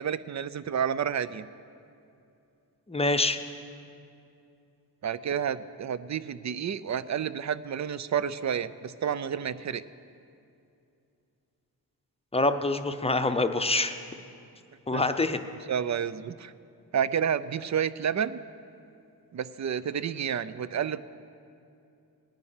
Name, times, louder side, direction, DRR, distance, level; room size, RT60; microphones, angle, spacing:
voice 1, 0.0-1.5 5.0-9.8 14.9-15.0 15.7-16.5 16.9-18.4 19.3-21.0, right 8 dB, 45° right, 16 dB, 0.5 m, -30 dB
voice 2, 2.9-3.4 12.3-14.0 14.9-15.4, left 2 dB, 15° left, 8 dB, 0.7 m, -25 dB
18.5 x 9.6 x 5.7 m, 2.6 s
wide cardioid pair, 95°, 40 cm